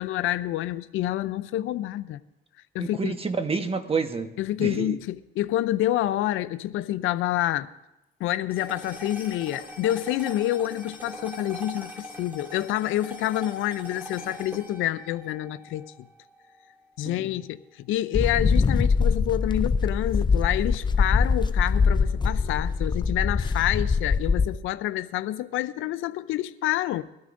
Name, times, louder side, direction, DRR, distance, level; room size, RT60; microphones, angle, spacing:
voice 1, 0.0-2.2 2.7-3.1 4.4-7.7 8.2-15.9 17.0-27.0, left 14 dB, 90° left, 0.5 m, -28 dB
voice 2, 2.8-4.3 4.6-5.0 17.0-17.2, right 4 dB, 30° right, 1.2 m, -28 dB
sound 1, 8.5-17.0, equal, 10° right, 2.4 m, -42 dB
sound 2, 18.1-24.6, left 5 dB, 25° left, 0.4 m, -23 dB
22.0 x 13.0 x 2.6 m
cardioid pair, 90°, 20 cm